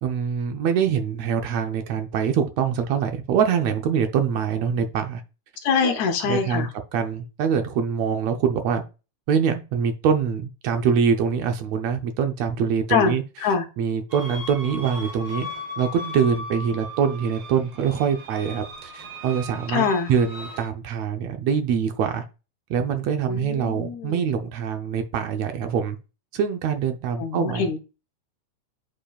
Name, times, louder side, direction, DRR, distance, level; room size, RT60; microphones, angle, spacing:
voice 1, 0.0-5.2 5.8-5.9 6.3-8.8 9.3-13.2 13.8-15.5 15.8-22.2 22.7-26.0 26.3-27.8, right 7 dB, 70° right, 1.9 m, -24 dB
voice 2, 5.6-6.7 12.9-13.7 19.7-20.1 23.3-24.2 27.2-27.8, left 6 dB, 75° left, 2.4 m, -24 dB
sound 1, 14.1-20.7, left 1 dB, 45° right, 2.7 m, -37 dB
8.7 x 5.4 x 2.3 m
omnidirectional pair, 3.4 m